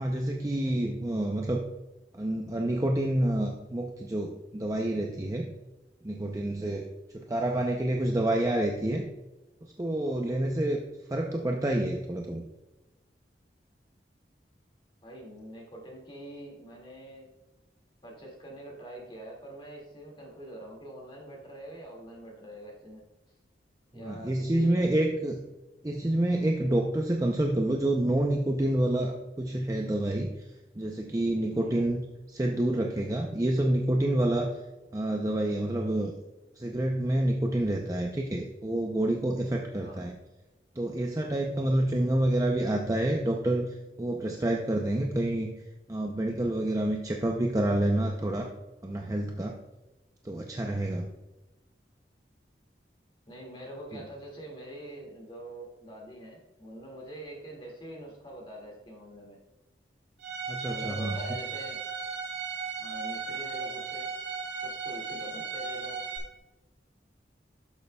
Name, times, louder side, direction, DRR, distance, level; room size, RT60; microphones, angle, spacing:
voice 1, 0.0-1.6 2.1-5.5 6.0-6.9 7.1-9.0 9.8-10.8 11.1-12.4 23.9-25.4 25.8-30.3 30.7-32.0 32.3-34.6 34.9-36.1 36.6-40.2 40.8-45.5 45.9-48.5 48.8-49.6 50.2-51.1 60.5-61.2, right 1 dB, 20° right, 1 dB, 0.5 m, -28 dB
voice 2, 15.0-17.3 18.0-23.0 23.9-25.0 31.6-31.8 39.8-40.1 53.3-59.4 60.6-61.8 62.8-64.1 64.6-66.0, right 1 dB, 30° left, -1 dB, 2.0 m, -44 dB
Bowed string instrument, 60.2-66.2, right 5 dB, 85° right, 1.8 m, -36 dB
12.0 x 6.6 x 2.2 m, 1.1 s
head